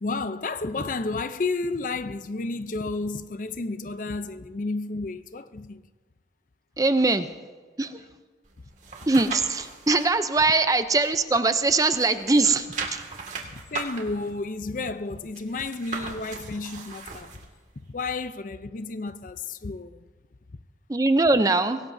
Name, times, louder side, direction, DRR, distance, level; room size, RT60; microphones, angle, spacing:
voice 1, 0.0-5.8 13.4-17.3 17.9-20.1, left 3 dB, 45° left, 0.5 m, -31 dB
voice 2, 6.8-7.3 7.8-8.0 9.1-12.7 12.9-13.0 20.9-21.8, right 3 dB, 20° right, 0.5 m, -21 dB
sound 1, 8.4-10.1 10.5-11.6 11.9-17.5 17.9-18.0, right 4 dB, 40° right, 2.0 m, -37 dB
23.0 x 18.0 x 2.7 m
head